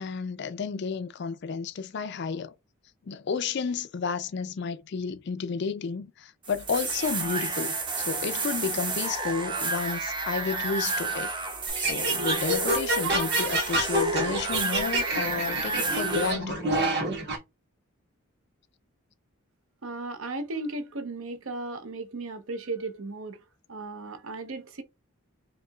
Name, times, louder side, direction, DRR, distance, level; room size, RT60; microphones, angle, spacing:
voice 1, 0.0-2.5 3.1-11.3 11.8-16.6, left 5 dB, 50° left, 0.4 m, -31 dB
sound 1, 6.4-16.3, right 4 dB, 20° right, 0.6 m, -31 dB
sound 2, 11.7-17.4, right 1 dB, 50° right, 1.4 m, -28 dB
voice 2, 19.8-23.4 23.7-24.8, right 2 dB, 65° right, 0.7 m, -35 dB
5.3 x 2.8 x 2.3 m
head